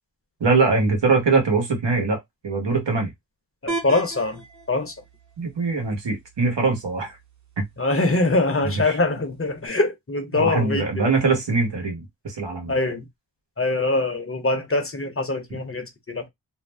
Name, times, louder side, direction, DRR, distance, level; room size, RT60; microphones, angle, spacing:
voice 1, 0.4-3.1 5.4-7.2 7.6-7.7 8.9-9.0 10.3-12.7 15.5-15.6, right 4 dB, 85° right, 1.1 m, -22 dB
voice 2, 3.6-4.4 4.7-4.9 7.8-11.0 12.7-13.1 13.6-16.3, left 2 dB, 35° left, 0.7 m, -23 dB
sound 1, 3.7-9.7, right 3 dB, 45° right, 0.8 m, -39 dB
2.5 x 2.0 x 3.3 m
wide cardioid pair, 65°, 41 cm